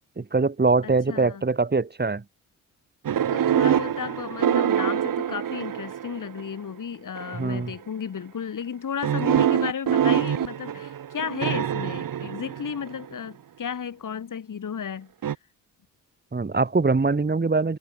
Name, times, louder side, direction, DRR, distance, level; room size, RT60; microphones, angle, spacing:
voice 1, 0.2-2.2 7.3-7.7 16.3-17.8, right 3 dB, 25° right, 3.1 m, -23 dB
voice 2, 0.8-1.4 3.3-15.1, left 7 dB, 55° left, 5.5 m, -33 dB
sound 1, 3.0-6.4 7.2-7.6 9.0-13.1 15.2-15.3, right 9 dB, 60° right, 2.4 m, -25 dB
supercardioid pair, 50°, 38 cm